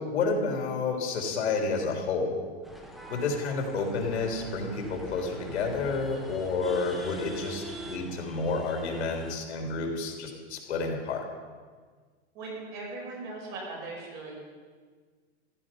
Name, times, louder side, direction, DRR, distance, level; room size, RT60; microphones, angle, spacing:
voice 1, 0.0-2.4 3.1-11.3, left 4 dB, 75° left, 2 dB, 3.5 m, -30 dB
sound 1, 2.6-9.4, equal, ahead, 0.6 m, -44 dB
voice 2, 12.3-14.3, right 3 dB, 30° right, -2 dB, 5.0 m, -39 dB
15.5 x 13.5 x 5.5 m, 1.5 s
supercardioid pair, 170°, 34 cm